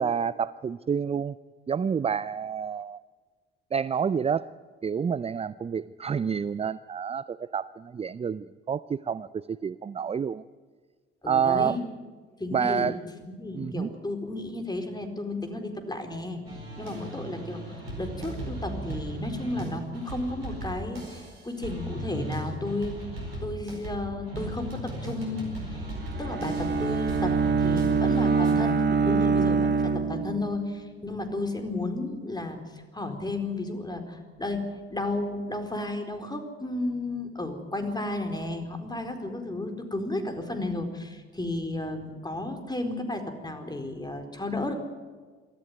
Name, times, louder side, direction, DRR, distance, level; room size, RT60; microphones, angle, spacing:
voice 1, 0.0-1.4 1.7-3.0 3.7-4.5 4.8-10.4 11.3-11.8 12.5-13.0 13.5-13.9, right 7 dB, 20° right, 17 dB, 0.5 m, -28 dB
voice 2, 11.2-11.8 12.4-12.9 13.2-16.4 16.8-23.0 23.4-25.8 26.2-32.6 32.9-34.6 34.9-44.7, left 2 dB, 15° left, 5 dB, 4.4 m, -33 dB
sound 1, 16.5-28.5, right 1 dB, 85° right, 4.7 m, -37 dB
Bowed string instrument, 26.0-30.7, right 5 dB, 40° right, 2.2 m, -25 dB
24.0 x 14.0 x 9.4 m, 1.5 s
hypercardioid pair, 55°, 29 cm